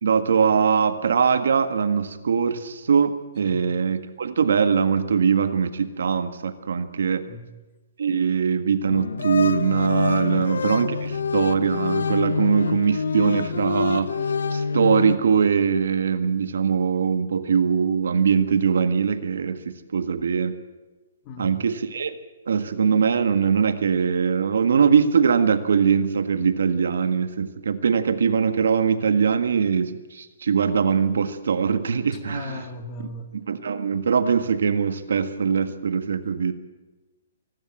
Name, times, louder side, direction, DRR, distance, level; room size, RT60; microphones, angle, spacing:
voice 1, 0.0-7.2 8.0-14.1 14.5-20.5 21.4-22.2 22.5-32.6 33.3-36.5, right 6 dB, 80° right, 10 dB, 1.7 m, -22 dB
sound 1, 8.9-15.2, left 5 dB, 90° left, 0.9 m, -26 dB
voice 2, 32.1-33.4, left 2 dB, 25° left, 7 dB, 1.8 m, -38 dB
25.0 x 12.5 x 8.9 m, 1.2 s
hypercardioid pair, 165°, 0 cm